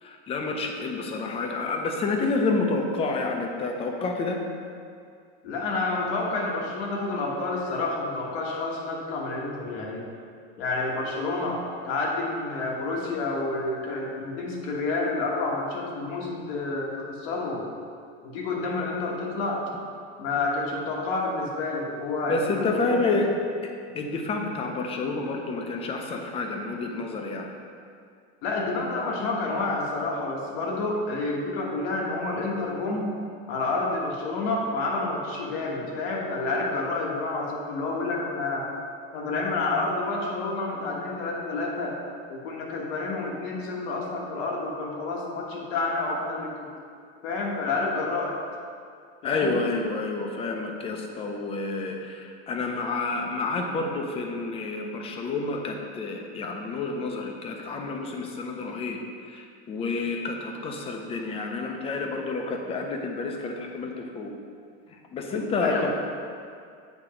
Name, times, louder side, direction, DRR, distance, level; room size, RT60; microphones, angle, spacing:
voice 1, 0.0-4.4 22.3-23.3 23.6-27.5 49.2-59.0 59.3-64.3 64.9-65.9, left 3 dB, 20° left, 3 dB, 0.5 m, -29 dB
voice 2, 5.4-10.0 10.6-17.7 18.2-19.6 20.2-23.0 28.4-33.1 33.5-38.7 39.1-42.0 42.3-46.5 47.2-48.4 49.2-49.6 65.6-65.9, left 3 dB, 70° left, -2 dB, 1.3 m, -29 dB
8.1 x 2.8 x 4.9 m, 2.3 s
cardioid pair, 160°, 30 cm